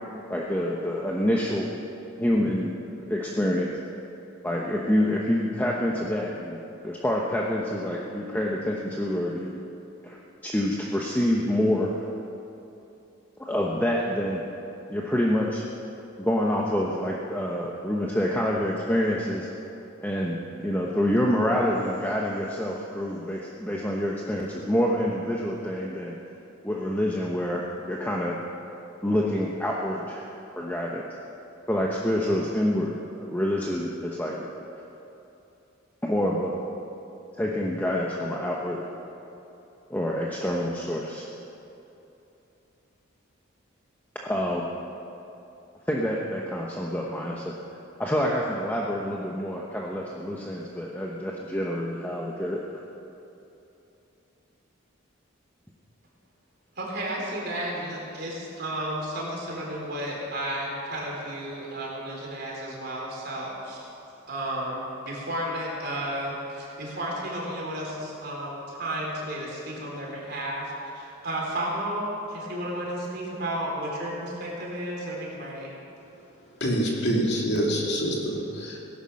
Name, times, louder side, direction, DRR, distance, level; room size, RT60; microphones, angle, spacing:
voice 1, 0.3-1.7 2.2-2.8 3.1-4.0 4.4-9.6 10.0-10.2 10.4-11.9 13.4-14.4 14.9-15.6 16.2-19.5 20.0-20.4 20.6-26.1 26.6-28.4 29.0-30.3 30.6-31.0 31.7-34.5 34.7-34.8 36.0-36.5 37.4-38.8 39.9-41.3 44.2-44.7 45.9-47.5 48.0-52.6, left 1 dB, 10° left, -3 dB, 1.0 m, -27 dB
voice 2, 56.8-63.9 64.3-75.7, right 1 dB, 50° right, -3 dB, 4.0 m, -33 dB
voice 3, 76.6-78.8, equal, 55° left, -2 dB, 2.9 m, -26 dB
18.0 x 11.0 x 6.4 m, 2.9 s
head